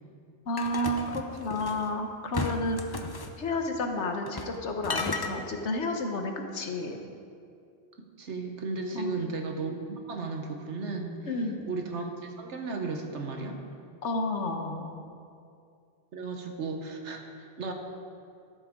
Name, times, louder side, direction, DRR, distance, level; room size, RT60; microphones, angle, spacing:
voice 1, 0.5-3.1 3.4-7.0 8.9-9.2 11.3-11.7 14.0-15.0, left 1 dB, 80° left, 4 dB, 1.4 m, -31 dB
sound 1, 0.6-1.9 2.3-3.3 4.3-4.6 4.8-5.3, left 4 dB, 30° left, 0.5 m, -34 dB
voice 2, 8.2-11.4 11.7-13.6 16.1-17.7, right 3 dB, 80° right, 3 dB, 1.5 m, -35 dB
12.5 x 11.5 x 3.7 m, 2.4 s
omnidirectional pair, 1.2 m